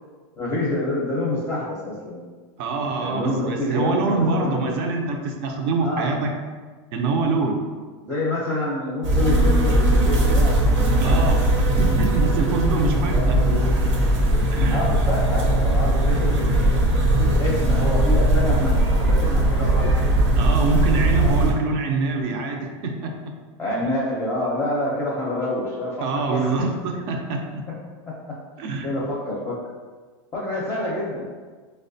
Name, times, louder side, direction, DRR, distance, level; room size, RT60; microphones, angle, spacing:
voice 1, 0.4-2.2 3.0-4.9 5.8-6.2 8.0-11.2 13.1-13.8 14.7-16.8 17.1-20.2 20.9-21.1 23.6-26.5 28.1-28.4 28.8-29.6 30.3-31.3, left 1 dB, 15° left, -6 dB, 0.5 m, -27 dB
voice 2, 2.6-6.3 6.9-7.6 11.0-13.4 14.5-14.8 20.4-23.1 26.0-27.6 28.6-28.9, right 3 dB, 55° right, 2 dB, 0.5 m, -25 dB
sound 1, 9.0-21.5, right 1 dB, 85° right, 0.8 m, -19 dB
4.6 x 2.1 x 2.6 m, 1.4 s
supercardioid pair, 145°, 15 cm